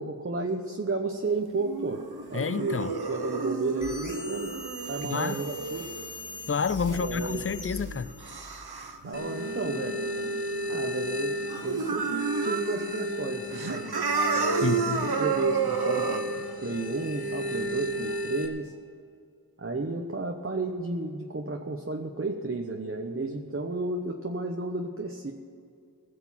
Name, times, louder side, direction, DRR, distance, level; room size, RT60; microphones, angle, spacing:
voice 1, 0.0-2.0 2.3-4.5 4.9-5.9 6.9-7.5 9.0-10.1 10.7-14.0 14.3-14.7 15.0-18.7 19.6-25.3, right 3 dB, 35° right, 1.0 m, -32 dB
sound 1, 1.5-11.1 11.4-13.0 13.4-16.2, right 5 dB, 85° right, 1.1 m, -32 dB
voice 2, 2.3-2.9 5.0-5.4 6.5-8.1 14.6-15.1, left 5 dB, 35° left, 0.5 m, -29 dB
sound 2, 3.8-8.7, left 2 dB, 55° left, 1.6 m, -41 dB
sound 3, 9.1-18.5, left 1 dB, 75° left, 1.6 m, -34 dB
17.5 x 6.9 x 7.4 m
wide cardioid pair, 40°, 37 cm